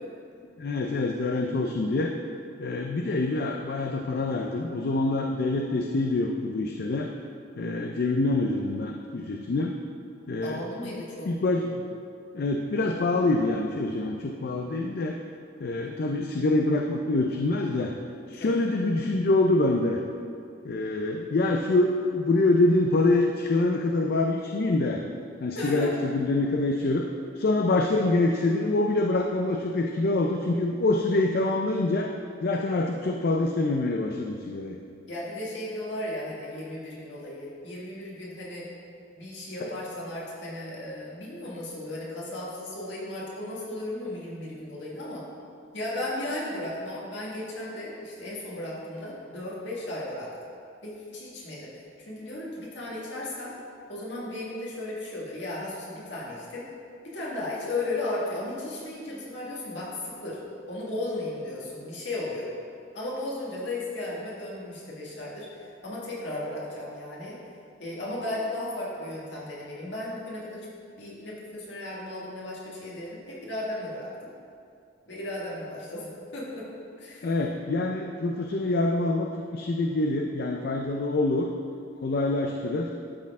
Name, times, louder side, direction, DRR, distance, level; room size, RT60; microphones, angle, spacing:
voice 1, 0.6-2.1 2.6-7.1 7.6-9.7 10.3-11.0 11.2-11.9 12.3-15.2 15.6-17.9 18.3-20.0 20.6-25.0 25.4-27.0 27.4-32.1 32.4-34.8 39.6-39.7 77.2-81.5 82.0-82.9, left 2 dB, 55° left, 2 dB, 0.4 m, -25 dB
voice 2, 10.4-11.3 15.8-16.0 18.4-18.6 25.5-25.9 35.1-38.7 39.2-45.2 45.7-50.3 50.8-51.7 52.0-53.5 53.9-56.6 57.0-60.4 60.7-62.5 62.9-67.4 67.8-70.7 71.0-74.1 75.1-76.7 77.0-77.3, left 1 dB, 70° left, -6 dB, 1.9 m, -35 dB
12.0 x 4.3 x 3.6 m, 2.4 s
head